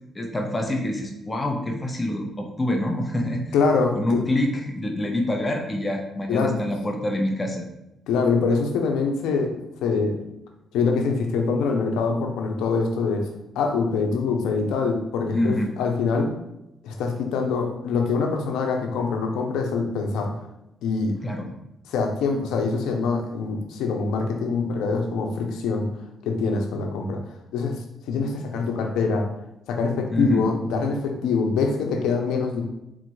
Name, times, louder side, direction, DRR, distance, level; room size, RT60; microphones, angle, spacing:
voice 1, 0.1-3.4 3.9-7.7 15.3-15.7 21.2-21.5 30.1-30.4, left 1 dB, 20° left, 2 dB, 0.7 m, -26 dB
voice 2, 3.5-4.2 6.3-6.6 8.1-10.2 10.7-13.2 13.6-16.3 16.8-20.3 20.8-21.2 21.9-25.9 26.2-27.2 27.5-27.8 28.1-29.3 29.7-32.6, left 4 dB, 90° left, 3 dB, 0.7 m, -24 dB
4.2 x 2.5 x 4.6 m, 0.88 s
cardioid pair, 90°, 0 cm